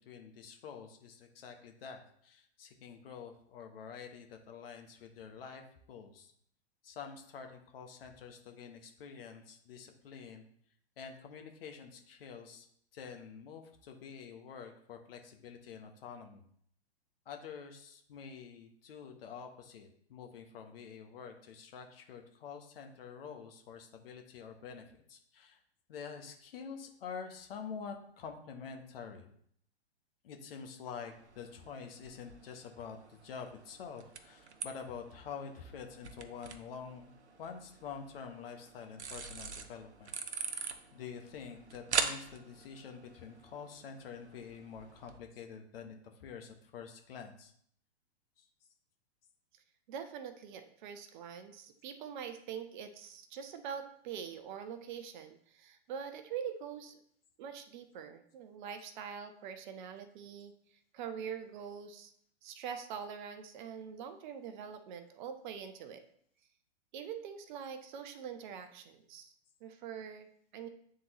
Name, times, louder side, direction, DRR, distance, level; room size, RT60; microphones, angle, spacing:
voice 1, 0.0-5.6 5.9-6.3 6.8-10.5 11.0-12.7 12.9-16.4 17.3-25.6 25.9-29.3 30.2-37.1 37.4-40.1 40.4-47.5 48.4-48.5, left 6 dB, 60° left, 4 dB, 1.1 m, -47 dB
sound 1, 31.1-45.2, right 5 dB, 90° right, 0.7 m, -43 dB
voice 2, 49.9-57.0 57.4-60.5 60.9-62.1 62.4-66.0 66.9-69.3 69.6-70.3 70.5-70.7, right 7 dB, 45° right, 9 dB, 0.8 m, -44 dB
8.8 x 3.8 x 3.0 m, 0.64 s
hypercardioid pair, 115°, 33 cm